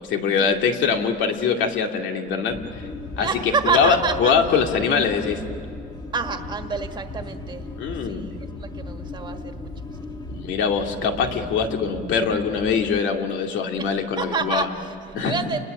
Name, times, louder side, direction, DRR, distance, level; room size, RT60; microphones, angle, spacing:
voice 1, 0.1-2.8 3.2-5.4 7.7-8.3 10.3-14.7 15.1-15.4, left 6 dB, 90° left, 4 dB, 2.3 m, -23 dB
sound 1, 2.5-13.0, left 3 dB, 20° left, 1.3 m, -36 dB
voice 2, 3.2-4.3 6.1-7.7 8.0-9.7 10.0-10.2 13.8-15.6, right 5 dB, 25° right, 6 dB, 1.5 m, -28 dB
30.0 x 21.0 x 6.7 m, 2.6 s
cardioid pair, 180°, 19 cm